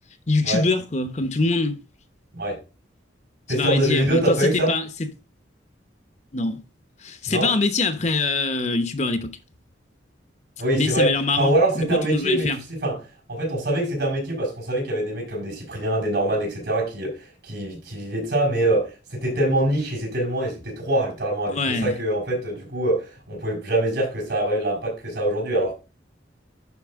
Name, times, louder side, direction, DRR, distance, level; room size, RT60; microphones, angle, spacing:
voice 1, 0.3-1.8 3.5-4.8 6.3-6.6 7.0-9.4 10.7-12.6 21.5-22.0, left 3 dB, 40° left, 0.9 m, -24 dB
voice 2, 3.5-4.7 7.3-7.5 10.6-13.0 13.3-25.7, right 1 dB, 65° right, 5.3 m, -24 dB
11.0 x 4.8 x 3.6 m
head